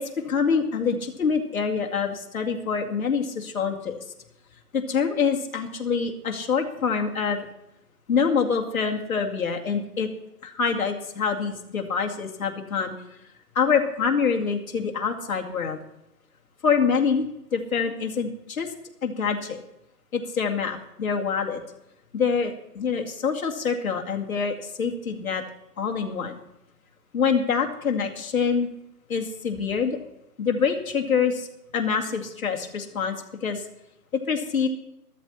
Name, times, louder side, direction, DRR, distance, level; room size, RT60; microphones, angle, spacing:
voice 1, 0.0-4.0 4.7-7.5 8.1-10.1 10.4-12.9 13.5-15.8 16.6-17.3 17.5-18.7 19.0-19.6 20.1-21.6 22.1-25.4 25.8-26.4 27.1-28.7 29.1-30.0 30.4-31.5 31.7-33.6 34.3-34.7, left 6 dB, 60° left, 2 dB, 2.4 m, -25 dB
13.5 x 13.0 x 4.3 m, 0.86 s
hypercardioid pair, 160°, 48 cm